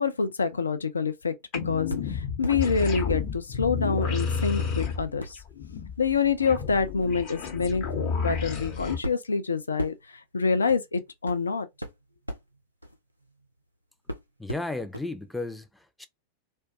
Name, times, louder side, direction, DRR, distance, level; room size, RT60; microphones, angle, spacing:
voice 1, 0.0-1.4 1.6-5.4 6.0-9.9 10.3-11.7, left 5 dB, 75° left, 0.4 m, -26 dB
sound 1, 1.5-9.0, left 5 dB, 45° left, 0.8 m, -31 dB
sound 2, 1.9-2.6 3.1-4.1 4.6-13.7 14.1-15.1 15.4-15.5, equal, 90° right, 0.5 m, -40 dB
voice 2, 14.4-16.1, left 2 dB, 5° left, 0.4 m, -34 dB
2.2 x 2.2 x 2.6 m
figure-of-eight pair, 90°, 0 cm